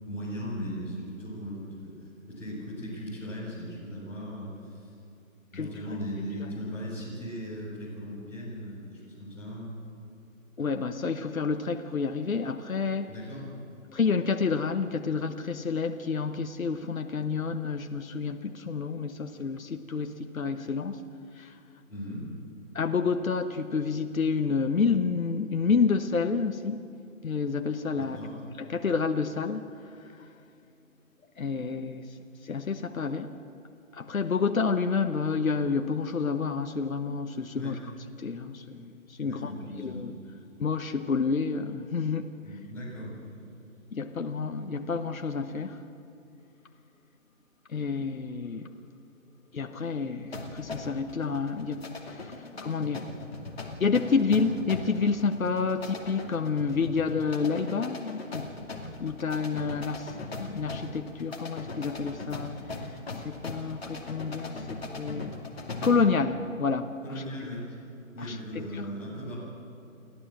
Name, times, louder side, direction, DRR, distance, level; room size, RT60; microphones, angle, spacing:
voice 1, 0.0-1.9 2.3-4.9 5.5-9.6 13.1-13.5 21.9-22.3 27.9-28.3 37.5-37.7 39.2-40.1 42.4-43.4 64.5-64.7 65.1-65.2 67.0-67.8 68.1-69.3, equal, 5° left, -11 dB, 4.2 m, -38 dB
voice 2, 10.6-13.1 13.9-21.0 21.3-21.6 22.7-26.9 27.2-28.2 28.6-30.3 31.4-32.2 32.4-33.4 33.9-37.9 38.2-40.1 40.6-42.3 43.9-45.8 47.7-48.7 49.5-53.0 53.8-58.5 59.0-64.6 64.9-65.3 65.8-67.0 68.2-68.9, left 5 dB, 75° left, 7 dB, 1.2 m, -29 dB
sound 1, 50.3-66.2, left 2 dB, 45° left, 2.5 m, -40 dB
29.5 x 13.0 x 7.6 m, 2.7 s
figure-of-eight pair, 170°, 41 cm